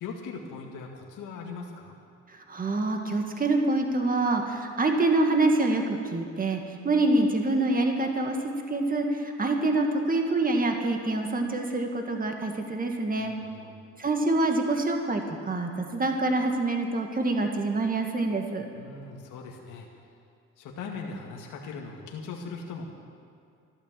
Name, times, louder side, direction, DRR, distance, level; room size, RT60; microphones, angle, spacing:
voice 1, 0.0-2.0 13.2-13.8 18.7-19.9 20.6-22.8, left 4 dB, 90° left, 0 dB, 2.0 m, -39 dB
voice 2, 2.3-8.4 8.7-13.3 14.0-18.6, right 2 dB, 30° right, 3 dB, 1.9 m, -26 dB
14.0 x 12.0 x 7.6 m, 2.4 s
cardioid pair, 90°, 30 cm